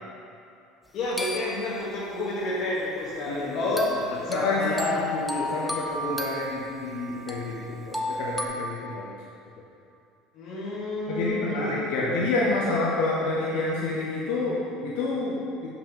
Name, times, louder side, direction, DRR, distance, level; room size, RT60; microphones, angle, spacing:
voice 1, 0.9-5.0 10.3-12.1, left 2 dB, 55° left, -6 dB, 1.4 m, -29 dB
sound 1, 1.2-1.8 3.8-8.5, left 1 dB, 5° right, 0.5 m, -33 dB
voice 2, 3.3-3.7 4.3-9.1 11.1-15.7, left 3 dB, 75° left, -5 dB, 0.8 m, -29 dB
7.4 x 5.5 x 3.0 m, 2.5 s
supercardioid pair, 110°, 0 cm